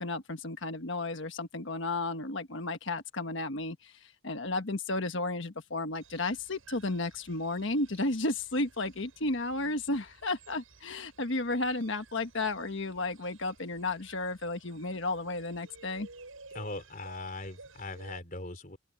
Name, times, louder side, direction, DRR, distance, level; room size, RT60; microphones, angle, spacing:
voice 1, 0.0-16.1, left 2 dB, 60° left, 1.4 m, -33 dB
sound 1, 6.0-18.2, right 3 dB, 75° right, 7.0 m, -55 dB
voice 2, 16.5-18.8, left 2 dB, 40° left, 3.7 m, -40 dB
open air
head